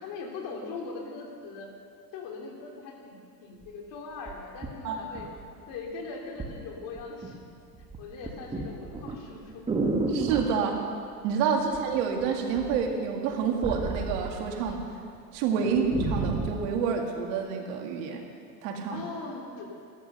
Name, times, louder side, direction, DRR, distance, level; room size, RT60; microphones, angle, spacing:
voice 1, 0.0-1.7 2.1-5.3 5.7-7.4 8.0-9.7 10.5-10.7 15.6-15.8 18.9-19.7, left 4 dB, 45° left, 0 dB, 2.9 m, -40 dB
sound 1, 3.6-3.7 4.3-5.7 6.4-6.6 7.0-7.4 7.7-10.6 11.7-12.2 12.5-14.8 15.2-15.3 15.6-16.7 17.4-17.5, right 3 dB, 10° right, 1.3 m, -31 dB
voice 2, 10.1-10.8 11.2-14.8 15.3-18.2 18.6-19.1, right 6 dB, 55° right, 2 dB, 2.2 m, -28 dB
14.0 x 13.0 x 6.7 m, 2.4 s
supercardioid pair, 140°, 47 cm